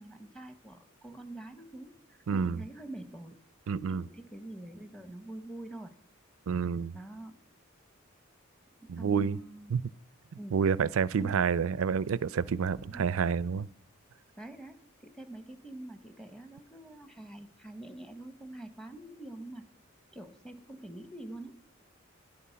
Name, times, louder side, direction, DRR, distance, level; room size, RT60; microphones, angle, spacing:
voice 1, 0.0-3.4 3.9-5.9 6.9-7.4 8.8-9.8 10.3-10.7 11.2-11.5 12.8-13.2 14.4-19.7 20.1-21.6, right 1 dB, 5° left, 0.8 m, -46 dB
voice 2, 2.3-2.6 3.7-4.0 6.5-6.9 8.9-9.4 9.7-9.8 10.5-13.7, right 6 dB, 80° right, 0.4 m, -28 dB
12.5 x 11.0 x 5.7 m
head